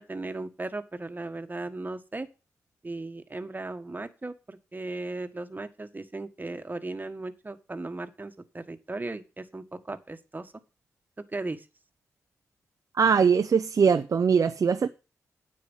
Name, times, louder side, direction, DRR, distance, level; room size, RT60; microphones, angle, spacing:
voice 1, 0.0-2.3 2.8-10.5 11.3-11.7, right 2 dB, 30° right, 1.7 m, -37 dB
voice 2, 13.0-14.9, right 6 dB, 60° right, 0.7 m, -21 dB
9.6 x 7.7 x 5.6 m
supercardioid pair, 45°, 6 cm